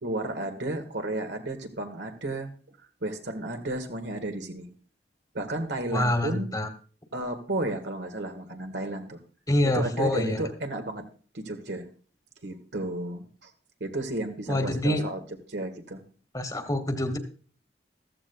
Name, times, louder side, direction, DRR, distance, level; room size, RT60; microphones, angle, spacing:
voice 1, 0.0-4.7 5.3-6.5 7.1-9.2 9.6-11.0 11.3-11.9 12.4-13.5 13.8-15.2 15.5-16.0, right 1 dB, 80° right, 6 dB, 1.7 m, -33 dB
voice 2, 5.9-6.7 9.5-10.4 14.5-15.0 16.3-17.2, left 1 dB, 20° left, 8 dB, 1.3 m, -26 dB
14.5 x 13.5 x 2.3 m, 0.40 s
head